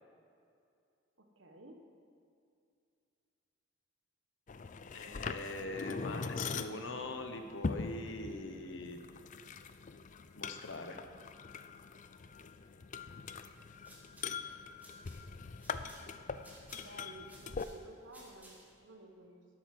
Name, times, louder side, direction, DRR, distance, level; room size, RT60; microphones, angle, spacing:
voice 1, 1.2-1.8 6.1-6.3 16.7-19.5, right 2 dB, 70° right, 3 dB, 1.4 m, -54 dB
sound 1, 4.5-17.6, left 5 dB, 40° left, 0.5 m, -42 dB
voice 2, 4.9-9.0 10.4-11.0, left 2 dB, 70° left, 6 dB, 1.1 m, -42 dB
sound 2, 13.7-18.9, right 1 dB, 10° right, 2.2 m, -60 dB
12.0 x 9.1 x 6.1 m, 2.5 s
head